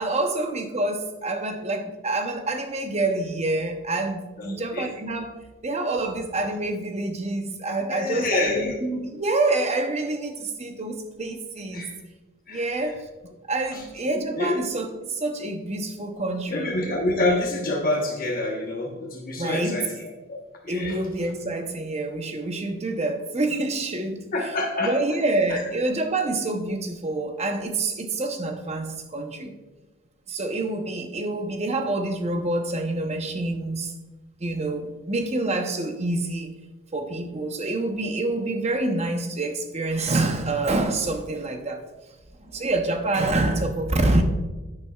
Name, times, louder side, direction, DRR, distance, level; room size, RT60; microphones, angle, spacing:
voice 1, 0.0-5.3 5.6-11.9 12.5-13.0 13.5-16.8 19.4-19.9 20.7-24.5 24.8-29.6 30.3-33.9 34.4-36.6 36.9-41.8 42.4-44.2, right 2 dB, 30° right, 5 dB, 0.8 m, -27 dB
voice 2, 4.4-4.9 7.9-8.7 11.7-11.9 12.5-12.6 13.7-14.6 16.5-20.0 20.3-21.0 24.3-24.9 25.5-25.6, left 2 dB, 40° left, 0 dB, 1.1 m, -27 dB
10.5 x 8.7 x 2.4 m, 1.2 s
head